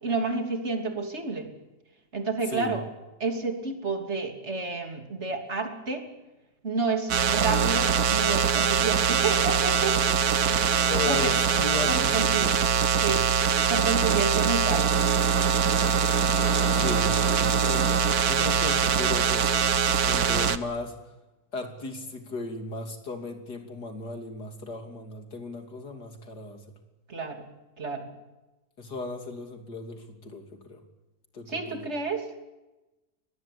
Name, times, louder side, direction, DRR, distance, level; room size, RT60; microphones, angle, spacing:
voice 1, 0.0-1.5 2.1-2.8 3.2-6.1 6.6-10.0 10.5-10.7 11.1-11.3 11.9-12.5 13.0-13.3 13.7-14.9 27.1-27.4 27.8-28.1 31.5-32.2, right 4 dB, 40° right, 5 dB, 3.3 m, -30 dB
voice 2, 2.5-2.8 10.9-13.2 16.7-19.6 20.0-21.0 21.5-26.6 28.8-30.8 31.3-31.9, left 3 dB, 70° left, 5 dB, 3.6 m, -36 dB
sound 1, 7.1-20.6, right 7 dB, 65° right, 1.5 m, -23 dB
23.5 x 19.5 x 8.6 m, 1.0 s
omnidirectional pair, 1.8 m